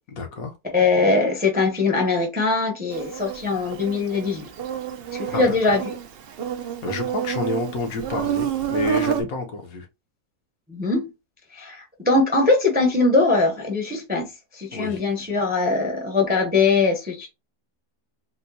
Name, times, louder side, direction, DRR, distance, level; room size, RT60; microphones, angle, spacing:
voice 1, 0.1-0.5 5.3-5.8 6.6-9.9 14.7-15.0, left 2 dB, 70° left, 1.3 m, -29 dB
voice 2, 0.7-4.4 5.1-5.9 10.7-11.0 11.5-17.3, left 3 dB, 10° right, 0.6 m, -21 dB
Insect, 2.9-9.2, right 10 dB, 80° right, 0.5 m, -29 dB
4.2 x 2.2 x 2.6 m
omnidirectional pair, 1.6 m